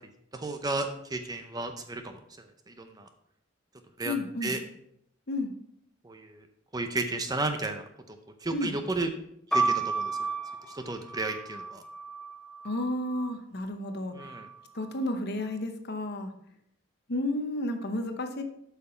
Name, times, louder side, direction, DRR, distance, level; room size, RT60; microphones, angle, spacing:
voice 1, 0.3-2.2 2.7-3.1 4.0-4.2 4.4-4.6 6.0-6.5 6.7-8.2 8.4-9.1 9.5-10.1 10.7-11.8 14.1-14.5, right 2 dB, 20° right, 6 dB, 0.6 m, -33 dB
voice 2, 4.0-4.6 5.3-5.5 8.5-8.7 12.6-14.1 14.7-16.3 17.1-18.4, left 1 dB, 50° left, 7 dB, 0.9 m, -32 dB
sound 1, 9.5-13.4 14.2-14.9, right 3 dB, 5° left, 0.9 m, -32 dB
8.0 x 5.8 x 4.4 m, 0.74 s
head